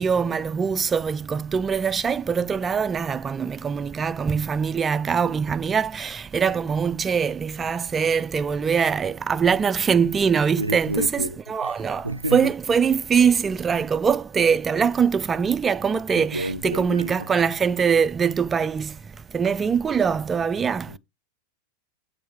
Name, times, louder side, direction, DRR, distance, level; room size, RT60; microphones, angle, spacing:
voice 1, 0.0-19.0 19.3-20.9, right 6 dB, 20° right, 0.3 m, -23 dB
voice 2, 10.6-11.7 12.0-12.5 16.1-17.3 20.9-21.0, equal, 85° right, 0.5 m, -30 dB
6.9 x 4.0 x 4.2 m
figure-of-eight pair, 90°, 0 cm